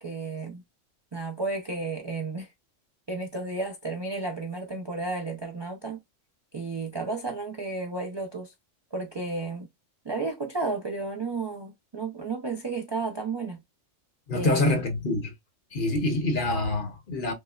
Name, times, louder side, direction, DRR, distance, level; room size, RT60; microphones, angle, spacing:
voice 1, 0.0-0.6 1.1-2.5 3.1-6.0 6.5-8.5 8.9-9.7 10.0-13.6 14.3-14.8, right 3 dB, 40° right, 0.3 m, -32 dB
voice 2, 14.3-15.3 15.7-17.3, left 2 dB, 45° left, 0.9 m, -26 dB
5.3 x 2.0 x 2.3 m
omnidirectional pair, 1.3 m